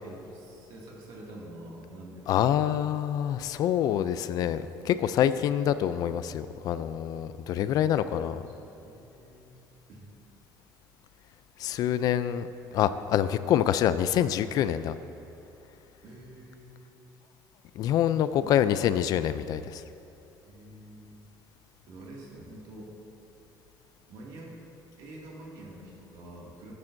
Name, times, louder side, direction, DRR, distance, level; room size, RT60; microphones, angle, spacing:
voice 1, 0.0-2.5 7.6-9.6 9.9-10.1 16.0-17.0 18.4-18.5 20.4-21.2 21.9-22.9 24.1-24.6 25.0-26.7, right 1 dB, 70° right, -3 dB, 2.2 m, -47 dB
voice 2, 2.3-8.4 11.6-12.5 12.7-15.0 17.8-19.8, left 10 dB, 55° left, 13 dB, 0.3 m, -26 dB
13.0 x 9.7 x 2.6 m, 2.8 s
cardioid pair, 130°, 8 cm